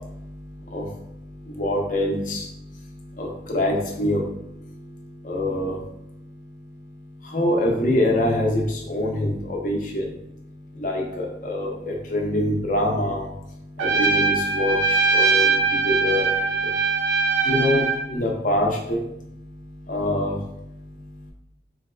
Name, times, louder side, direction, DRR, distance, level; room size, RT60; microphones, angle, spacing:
voice 1, 1.6-2.4 3.2-4.2 5.2-5.8 7.3-10.0 10.8-13.3 13.8-14.8 15.1-15.6 15.8-16.3 17.5-19.0 19.9-20.3, left 1 dB, 45° left, 0 dB, 0.5 m, -24 dB
Trumpet, 13.8-18.0, right 4 dB, 90° right, 0.4 m, -21 dB
3.8 x 2.3 x 2.3 m, 0.81 s
head